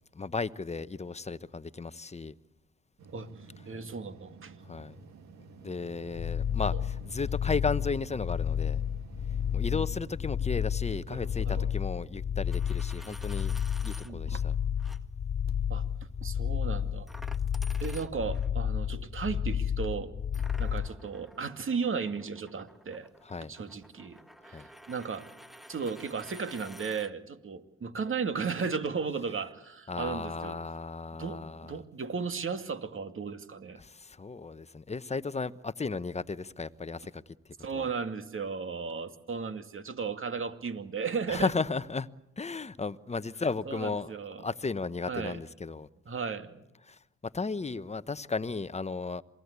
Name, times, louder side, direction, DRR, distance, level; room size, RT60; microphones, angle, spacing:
voice 1, 0.1-2.3 4.7-5.0 5.6-8.8 9.5-13.5 13.8-14.5 23.2-23.5 24.5-24.7 29.9-31.8 33.8-37.2 37.7-37.9 41.3-42.1 42.4-44.1 44.4-45.9 46.9-49.2, left 4 dB, 20° left, 1.0 m, -34 dB
sound 1, 3.0-10.1 10.8-12.1 13.5-13.6 15.5-15.6 17.4-17.9 20.8-20.9, right 4 dB, 70° right, 2.1 m, -51 dB
voice 2, 3.1-4.5 6.7-6.8 9.7-9.8 10.3-10.4 11.5-11.6 14.0-14.4 15.7-15.8 16.2-17.1 17.8-20.1 20.6-23.1 23.5-25.3 25.7-30.6 31.1-33.8 37.6-41.5 43.6-44.4 45.1-45.4 46.1-46.6, right 5 dB, 45° right, 2.4 m, -35 dB
sound 2, 6.1-20.9, left 8 dB, 45° left, 1.1 m, -31 dB
Coin (dropping), 12.4-14.1 14.8-15.0 17.1-18.5 20.3-27.1, equal, ahead, 1.6 m, -51 dB
27.5 x 19.5 x 8.3 m
supercardioid pair, 65°, 29 cm